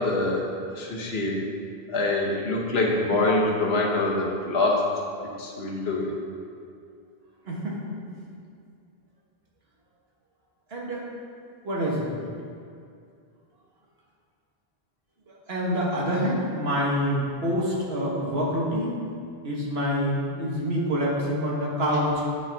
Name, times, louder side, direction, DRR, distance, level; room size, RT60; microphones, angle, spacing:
voice 1, 0.0-1.4 1.9-4.9 5.4-6.2, left 2 dB, 75° left, -2 dB, 1.3 m, -25 dB
voice 2, 7.4-8.0 10.7-11.0 11.6-12.1 15.3-19.0 19.4-22.2, equal, 75° right, -4 dB, 1.7 m, -26 dB
9.5 x 5.3 x 3.5 m, 2.4 s
omnidirectional pair, 1.0 m